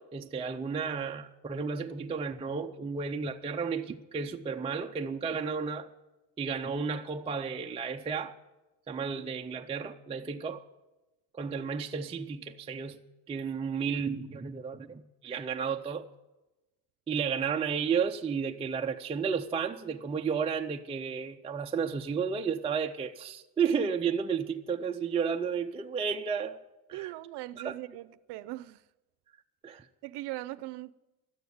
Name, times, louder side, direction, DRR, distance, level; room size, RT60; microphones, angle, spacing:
voice 1, 0.0-5.9 6.4-8.3 8.9-10.6 11.4-13.0 13.3-16.1 17.1-26.6 26.9-27.1 27.6-27.7 29.6-29.9, right 6 dB, 15° right, 0.4 m, -32 dB
voice 2, 26.9-28.8 30.0-30.9, right 17 dB, 70° right, 0.6 m, -40 dB
13.0 x 9.3 x 9.4 m
cardioid pair, 150°, 42 cm